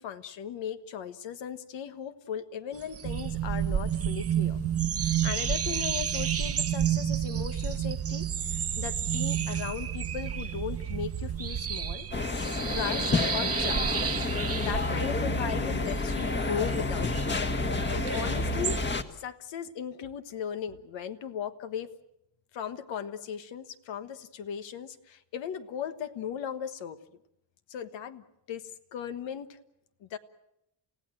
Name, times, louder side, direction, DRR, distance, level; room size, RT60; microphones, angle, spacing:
voice 1, 0.0-4.6 5.0-8.2 8.5-12.1 12.7-14.0 14.6-18.8 19.1-21.9 22.5-27.0 27.7-29.6 30.0-30.2, left 8 dB, 85° left, 10 dB, 1.4 m, -37 dB
sound 1, 2.7-18.8, right 7 dB, 35° right, 0.8 m, -35 dB
sound 2, 3.0-12.0, right 11 dB, 60° right, 1.3 m, -31 dB
sound 3, 12.1-19.0, left 2 dB, 25° left, 1.5 m, -29 dB
29.5 x 16.0 x 7.8 m, 0.84 s
cardioid pair, 110°, 44 cm